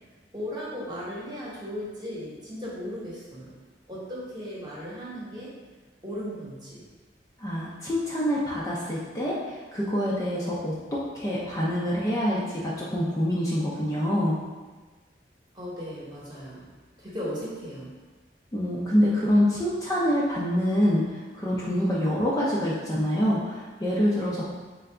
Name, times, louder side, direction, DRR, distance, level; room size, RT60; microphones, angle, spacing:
voice 1, 0.3-3.5 3.9-5.5 6.0-6.8 15.5-16.6 17.0-17.9, equal, 25° right, -7 dB, 1.0 m, -36 dB
voice 2, 7.4-14.4 18.5-21.0 21.3-24.4, equal, 20° left, -6 dB, 0.5 m, -26 dB
3.9 x 2.4 x 3.3 m, 1.3 s
head